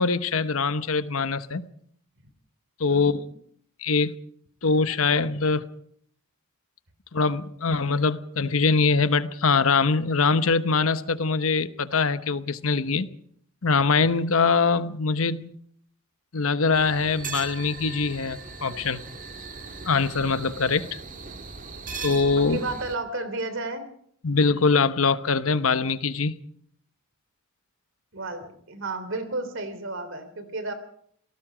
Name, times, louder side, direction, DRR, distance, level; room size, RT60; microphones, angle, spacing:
voice 1, 0.0-1.7 2.8-3.2 3.8-4.1 4.6-5.6 7.1-13.1 13.6-15.6 16.3-19.0 19.9-21.0 22.0-22.6 24.2-26.4, left 4 dB, 70° left, 1.0 m, -23 dB
voice 2, 2.8-3.3 22.4-23.8 28.1-30.7, right 2 dB, 60° right, 3.2 m, -32 dB
sound 1, 16.7-22.9, right 4 dB, 40° right, 1.8 m, -39 dB
27.5 x 18.5 x 5.1 m
head